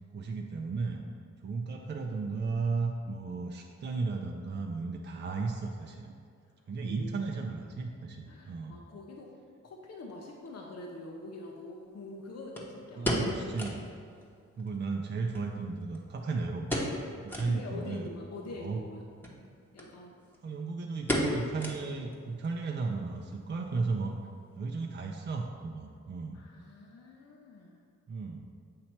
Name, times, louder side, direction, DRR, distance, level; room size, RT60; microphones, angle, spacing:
voice 1, 0.1-1.0 1.4-6.1 6.7-8.8 13.0-13.8 14.6-16.7 17.2-18.1 18.4-18.8 20.4-24.2 24.6-26.4 28.1-28.4, right 4 dB, 35° right, 1 dB, 0.5 m, -34 dB
voice 2, 6.8-7.1 8.3-9.3 9.6-13.2 17.5-19.0 19.7-20.1 26.3-27.8, left 2 dB, 55° left, 0 dB, 0.7 m, -45 dB
sound 1, 10.5-10.6 12.6-13.9 14.2-14.3 14.6-14.7 15.3-16.2 16.6-17.0 17.3-17.6 18.1-18.2 19.1-19.4 19.8-19.9 20.2-20.5 21.1-22.1 22.4-22.5 23.1-23.5 23.7-23.8, equal, 5° left, 1.0 m, -33 dB
7.6 x 2.9 x 4.5 m, 2.3 s
cardioid pair, 70°, 31 cm